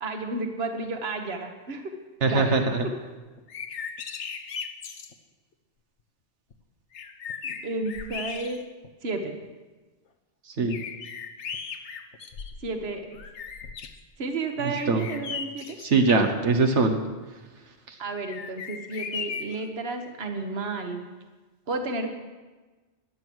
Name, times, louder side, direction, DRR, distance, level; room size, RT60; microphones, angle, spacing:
voice 1, 0.0-1.9 2.2-2.8 7.4-8.6 9.0-9.4 12.6-13.1 14.2-15.8 18.0-21.1 21.7-22.1, right 3 dB, 65° right, 5 dB, 1.6 m, -32 dB
voice 2, 2.2-2.9 10.4-10.8 14.9-15.1 15.8-17.0 17.9-18.0, right 3 dB, 90° right, 4 dB, 1.6 m, -22 dB
sound 1, 3.4-5.1 6.5-6.6 6.9-8.9 9.4-9.5 10.7-12.8 13.1-14.0 14.7-15.9 18.3-19.7, left 6 dB, 80° left, 1.3 m, -37 dB
16.5 x 10.5 x 6.3 m, 1.2 s
omnidirectional pair, 1.2 m